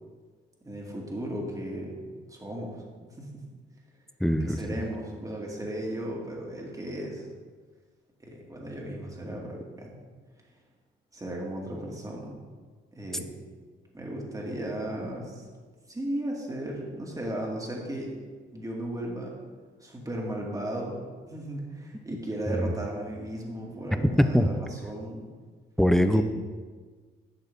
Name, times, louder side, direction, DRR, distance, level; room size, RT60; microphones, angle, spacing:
voice 1, 0.6-3.4 4.4-7.3 8.2-10.0 11.1-12.3 12.9-13.3 13.9-15.5 15.9-18.1 18.5-19.3 19.8-21.0 21.3-25.3 26.1-26.2, right 1 dB, 15° right, -2 dB, 2.2 m, -35 dB
voice 2, 4.2-4.6 22.5-22.6 24.2-24.5 25.8-26.2, equal, ahead, 9 dB, 0.6 m, -21 dB
11.5 x 6.8 x 3.6 m, 1.5 s
cardioid pair, 90°, 20 cm